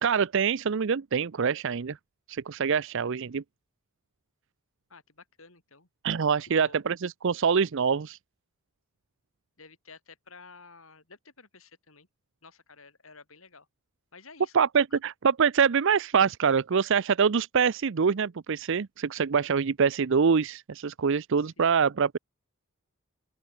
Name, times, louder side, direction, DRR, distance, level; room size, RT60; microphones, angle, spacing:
voice 1, 0.0-2.0 2.3-3.4 6.0-8.2 14.5-22.2, right 6 dB, 60° right, 0.5 m, -25 dB
voice 2, 4.9-5.9 6.5-6.8 9.6-12.1 12.4-13.7 14.1-14.6 14.9-15.0 21.4-21.8, left 4 dB, 65° left, 5.4 m, -52 dB
open air
head